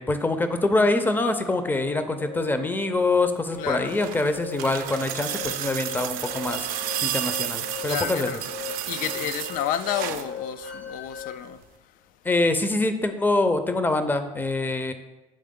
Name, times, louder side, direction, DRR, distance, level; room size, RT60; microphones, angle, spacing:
voice 1, 0.0-8.4 12.2-14.9, left 2 dB, 15° left, 0.6 m, -25 dB
sound 1, 1.5-11.4, left 5 dB, 85° left, 1.5 m, -39 dB
voice 2, 3.6-3.9 7.8-8.4 8.9-11.9, left 11 dB, 65° left, 0.4 m, -31 dB
sound 2, 3.6-10.3 11.6-11.7, right 11 dB, 70° right, 0.5 m, -32 dB
7.6 x 3.4 x 3.6 m
supercardioid pair, 80°, 15 cm